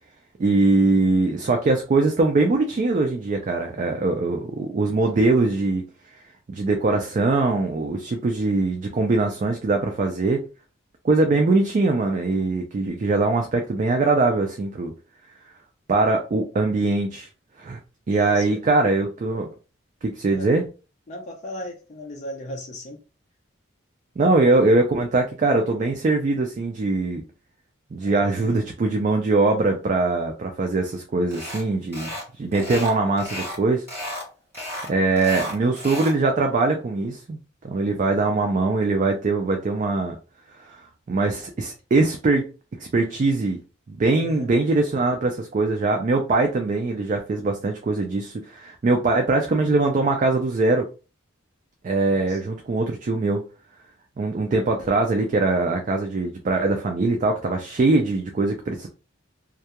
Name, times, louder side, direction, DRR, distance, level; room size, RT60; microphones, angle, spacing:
voice 1, 0.4-5.8 6.5-10.4 11.0-14.9 15.9-17.3 17.6-17.8 18.1-19.5 20.0-20.6 24.2-27.2 27.9-32.1 32.4-33.9 34.9-37.4 37.6-40.2 40.7-40.8 41.1-42.4 42.8-43.6 43.9-50.9 51.8-53.4 54.2-58.9, right 3 dB, 40° right, 0.3 m, -22 dB
voice 2, 18.1-18.6 20.3-20.5 21.1-23.0 28.0-28.5 44.1-44.5 52.1-52.4, left 1 dB, 35° left, 0.4 m, -37 dB
sound 1, 31.3-31.6 31.9-32.3 32.5-33.6 33.9-34.3 34.5-36.2, left 1 dB, 10° right, 1.2 m, -33 dB
2.3 x 2.2 x 2.8 m
head